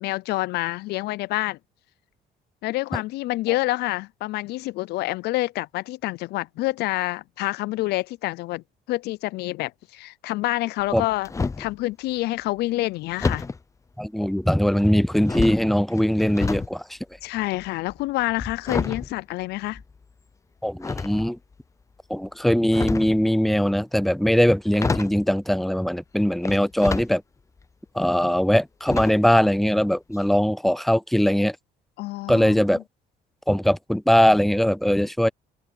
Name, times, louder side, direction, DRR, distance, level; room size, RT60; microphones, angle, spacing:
voice 1, 0.0-1.6 2.6-11.3 11.6-13.5 17.2-19.8 32.0-32.5, left 18 dB, 75° left, 0.4 m, -27 dB
sound 1, 10.8-11.8 13.2-13.6 14.4-14.9 15.2-16.7 17.0-20.0 20.8-21.5 22.5-23.2 24.4-24.5 24.7-25.2 26.4-27.1 27.6-27.7 28.9-29.4 29.7-29.8 30.1-30.2, left 4 dB, 20° left, 0.7 m, -29 dB
voice 2, 14.0-17.0 20.6-21.4 22.1-27.2 27.9-31.6 32.3-32.8 33.5-35.3, equal, ahead, 0.3 m, -21 dB
open air
cardioid pair, 110°, 17 cm